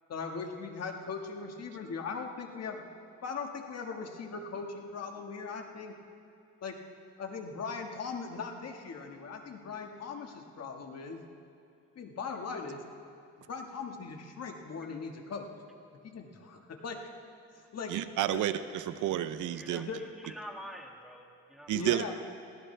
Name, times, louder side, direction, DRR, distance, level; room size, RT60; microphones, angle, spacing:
voice 1, 0.1-2.8 3.2-5.9 6.6-6.8 7.2-11.2 11.9-12.8 13.5-15.5 16.0-17.0 17.7-18.0 18.3-18.4 19.7-20.0 21.7-22.1, left 5 dB, 55° left, 3 dB, 1.7 m, -39 dB
voice 2, 17.9-19.9 21.7-22.1, right 12 dB, 80° right, 12 dB, 0.7 m, -31 dB
voice 3, 19.6-22.1, equal, ahead, 1 dB, 1.9 m, -47 dB
20.0 x 16.5 x 3.4 m, 2.6 s
cardioid pair, 90°, 30 cm